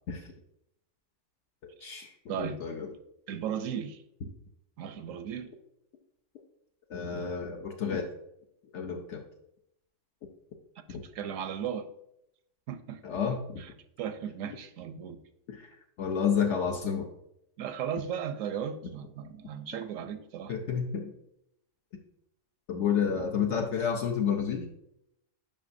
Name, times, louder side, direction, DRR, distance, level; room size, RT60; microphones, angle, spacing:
voice 1, 1.6-2.9 6.9-8.1 8.7-9.2 10.9-11.0 13.0-13.6 15.5-15.7 16.0-17.1 20.5-21.1 22.7-24.7, left 7 dB, 65° left, 2 dB, 1.0 m, -30 dB
voice 2, 3.3-4.0 4.8-5.5 11.0-11.9 12.7-13.0 13.6-13.7 14.0-15.2 17.6-20.5, right 8 dB, 90° right, 10 dB, 1.0 m, -36 dB
8.8 x 5.6 x 2.6 m, 0.79 s
omnidirectional pair, 1.3 m